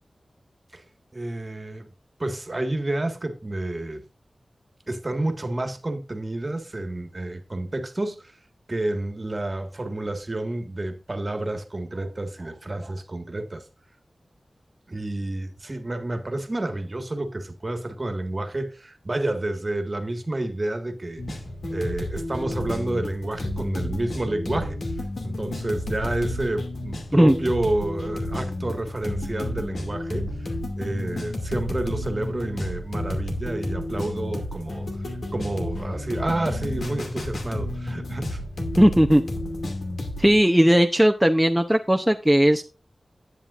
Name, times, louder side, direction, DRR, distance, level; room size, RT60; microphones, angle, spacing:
voice 1, 1.1-1.9 2.2-4.0 4.9-8.4 8.7-13.6 14.9-21.4 21.7-24.8 25.2-34.9 35.3-38.4, right 1 dB, 35° right, 1.7 m, -29 dB
sound 1, 21.2-40.4, left 1 dB, 85° left, 2.4 m, -31 dB
voice 2, 38.8-39.2 40.2-42.6, equal, 5° right, 0.7 m, -17 dB
10.5 x 9.2 x 2.5 m
wide cardioid pair, 70°, 0 cm